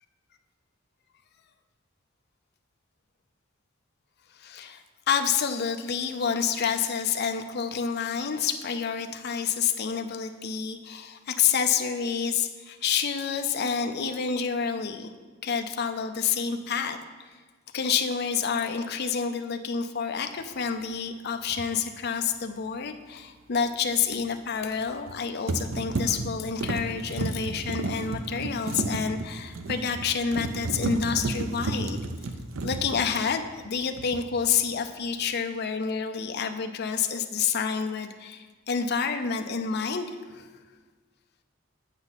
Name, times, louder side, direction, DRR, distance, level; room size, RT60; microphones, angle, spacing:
voice 1, 4.3-15.1 15.4-17.3 17.7-32.0 32.6-40.5, left 6 dB, 50° left, 6 dB, 0.5 m, -28 dB
sound 1, 21.5-21.7 24.8-25.2 25.5-33.7 34.0-34.4, right 2 dB, 70° right, 0.6 m, -32 dB
7.8 x 7.2 x 4.1 m, 1.4 s
head